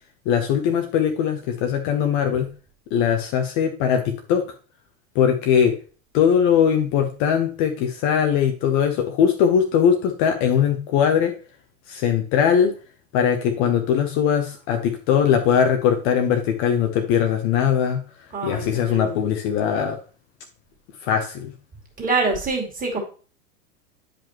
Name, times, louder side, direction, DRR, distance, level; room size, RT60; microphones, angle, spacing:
voice 1, 0.2-2.5 2.9-4.4 5.1-5.8 6.1-11.3 11.9-12.7 13.1-18.0 18.4-20.0 21.0-21.5, left 8 dB, 40° left, 5 dB, 0.9 m, -20 dB
voice 2, 18.3-19.2 22.0-23.0, right 3 dB, 20° right, -1 dB, 2.5 m, -25 dB
8.6 x 5.1 x 3.0 m, 0.38 s
hypercardioid pair, 100°, 44 cm